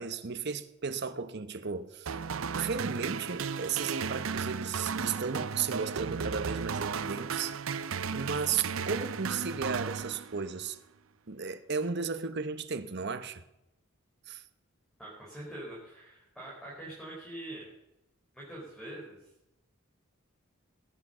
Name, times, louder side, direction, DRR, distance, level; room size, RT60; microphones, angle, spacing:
voice 1, 0.0-2.1 2.5-7.6 8.1-10.8 11.3-13.4 14.3-14.4, right 5 dB, 50° right, 1.0 m, -34 dB
sound 1, 2.1-10.6, right 6 dB, 70° right, 0.6 m, -35 dB
voice 2, 15.0-17.6 18.3-19.3, right 1 dB, 5° left, 4.3 m, -44 dB
19.0 x 8.7 x 6.7 m
head